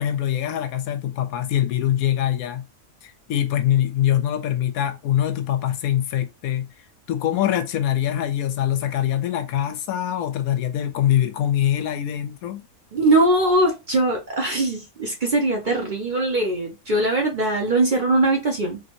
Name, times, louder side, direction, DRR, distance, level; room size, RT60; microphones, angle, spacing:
voice 1, 0.0-2.6 3.0-6.7 7.1-12.6, left 11 dB, 85° left, 1.0 m, -23 dB
voice 2, 12.9-18.8, right 2 dB, 45° right, 0.7 m, -21 dB
3.2 x 2.6 x 2.8 m
omnidirectional pair, 1.5 m